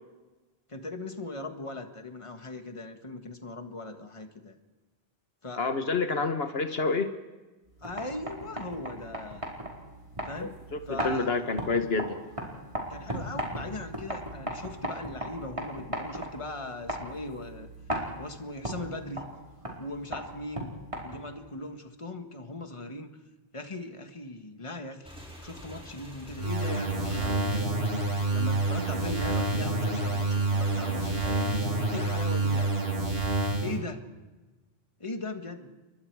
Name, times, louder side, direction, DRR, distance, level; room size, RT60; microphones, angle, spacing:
voice 1, 0.7-4.6 5.4-5.7 7.8-9.5 10.2-10.6 10.9-11.4 12.9-17.7 18.2-19.3 19.8-20.7 21.0-23.1 23.5-25.1 25.4-27.7 28.3-31.6 31.9-32.7 33.6-34.0 35.0-35.7, left 2 dB, 30° left, 6 dB, 1.7 m, -39 dB
voice 2, 5.6-7.1 10.4-10.8 11.0-12.2, left 4 dB, 75° left, 8 dB, 1.5 m, -28 dB
sound 1, 7.7-21.4, equal, 30° right, 4.6 m, -38 dB
Motorcycle / Engine, 25.1-32.6, left 1 dB, 5° right, 5.4 m, -46 dB
sound 2, 26.4-33.8, right 2 dB, 70° right, 3.4 m, -28 dB
30.0 x 23.5 x 4.8 m, 1.2 s
omnidirectional pair, 1.0 m